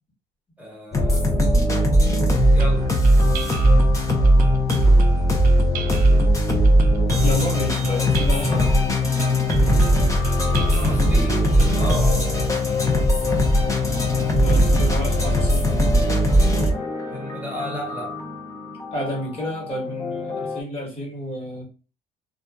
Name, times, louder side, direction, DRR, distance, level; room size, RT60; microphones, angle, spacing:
voice 1, 0.6-1.5 2.5-2.9 8.5-8.9 10.4-12.4 17.1-18.2, equal, 10° right, 1.2 m, -34 dB
sound 1, 0.9-20.6, equal, 20° left, 0.6 m, -19 dB
sound 2, 2.6-12.2, right 8 dB, 55° right, 0.4 m, -31 dB
voice 2, 7.2-8.6 14.4-15.7 18.9-21.6, equal, 35° left, 1.4 m, -30 dB
2.7 x 2.3 x 2.3 m
cardioid pair, 110°, 17 cm